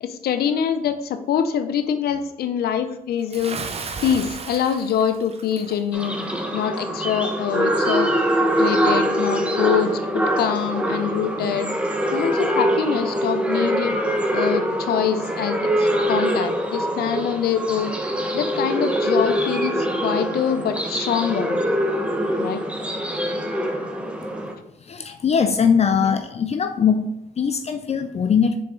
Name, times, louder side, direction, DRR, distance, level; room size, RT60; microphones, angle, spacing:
voice 1, 0.0-3.6 4.0-6.2 6.5-8.1 8.6-11.7 12.1-14.0 14.3-18.0 18.3-21.6 22.4-22.6 26.0-26.2, left 8 dB, 85° left, 9 dB, 0.7 m, -24 dB
Bathtub (filling or washing) / Splash splatter, 3.3-5.8, right 4 dB, 40° right, 0.7 m, -34 dB
sound 1, 5.9-24.5, equal, 5° right, 1.1 m, -23 dB
voice 2, 24.8-28.5, left 6 dB, 45° left, 8 dB, 0.5 m, -21 dB
6.3 x 4.3 x 3.7 m, 0.83 s
cardioid pair, 80°, 16 cm